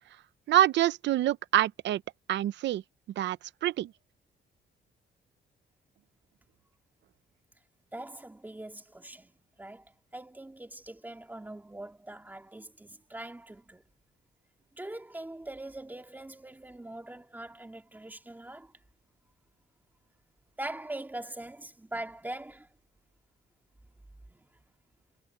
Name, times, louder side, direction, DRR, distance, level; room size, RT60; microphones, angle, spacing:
voice 1, 0.5-2.0 2.3-2.8 3.2-3.9, right 13 dB, 75° right, 0.6 m, -26 dB
voice 2, 7.9-9.3 9.6-13.8 14.8-18.7 20.6-22.7 24.3-24.4, right 1 dB, 10° right, 2.9 m, -42 dB
cardioid pair, 150°, 19 cm